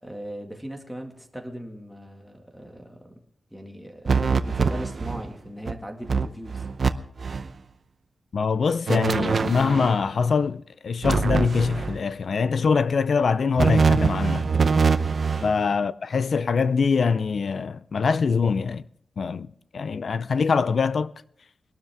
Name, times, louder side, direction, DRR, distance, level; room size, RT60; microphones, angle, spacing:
voice 1, 0.0-3.1 3.5-6.6 15.3-15.5, equal, ahead, 2.0 m, -39 dB
sound 1, 4.1-5.3 5.7-5.8 6.1-6.9 7.2-7.5 8.9-10.0 11.0-12.0 13.6-15.5, right 5 dB, 45° right, 0.7 m, -23 dB
voice 2, 8.3-14.5 15.4-18.8 19.2-21.1, left 5 dB, 55° left, 0.5 m, -23 dB
22.0 x 12.5 x 3.6 m
wide cardioid pair, 140°, 0 cm